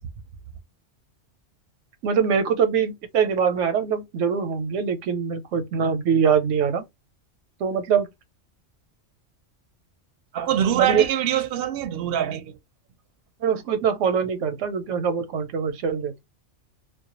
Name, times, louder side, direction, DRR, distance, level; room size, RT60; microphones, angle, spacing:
voice 1, 2.0-6.9 7.6-8.1 10.8-11.0 13.4-16.2, right 7 dB, 90° right, 1.0 m, -23 dB
voice 2, 10.3-12.6, right 10 dB, 65° right, 0.7 m, -24 dB
2.3 x 2.1 x 2.8 m
omnidirectional pair, 1.2 m